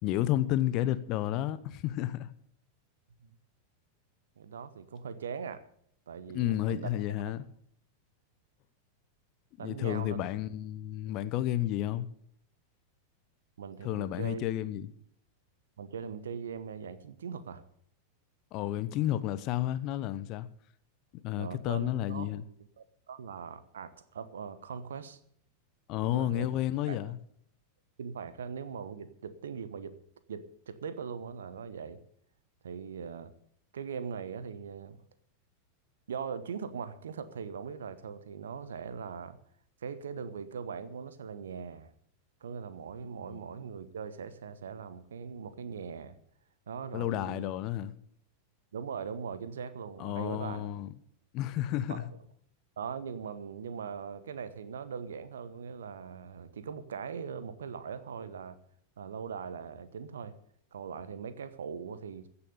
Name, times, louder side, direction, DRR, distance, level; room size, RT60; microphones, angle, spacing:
voice 1, 0.0-2.3 6.3-7.4 9.6-12.1 13.8-14.9 18.5-20.5 21.2-22.4 25.9-27.2 43.3-43.4 46.9-47.9 50.0-50.9 51.3-52.1, left 13 dB, 40° left, 0.8 m, -31 dB
voice 2, 4.4-5.6 6.1-7.0 9.6-10.2 13.6-14.6 15.8-17.6 21.4-22.3 22.8-25.2 26.0-26.5 26.9-27.1 28.0-30.0 30.3-32.0 32.6-33.3 33.7-35.0 36.1-39.4 39.8-41.9 42.4-46.2 46.7-47.5 48.7-50.7 51.7-52.1 52.8-58.6 59.0-60.3 60.7-62.3, right 6 dB, 65° right, 1.1 m, -40 dB
15.5 x 7.1 x 8.1 m
figure-of-eight pair, 90°, 0 cm